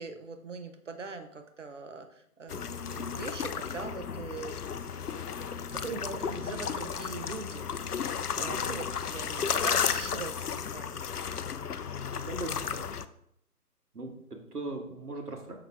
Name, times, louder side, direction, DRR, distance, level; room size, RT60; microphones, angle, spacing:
voice 1, 0.0-4.6 5.0-7.6 8.4-11.3, right 4 dB, 50° right, 7 dB, 0.9 m, -42 dB
sound 1, 2.5-13.0, left 7 dB, 70° left, 0.6 m, -33 dB
voice 2, 8.3-8.8 12.0-12.9 13.9-15.6, right 2 dB, 70° right, 3 dB, 1.8 m, -40 dB
6.8 x 5.9 x 3.5 m, 0.74 s
figure-of-eight pair, 155°, 47 cm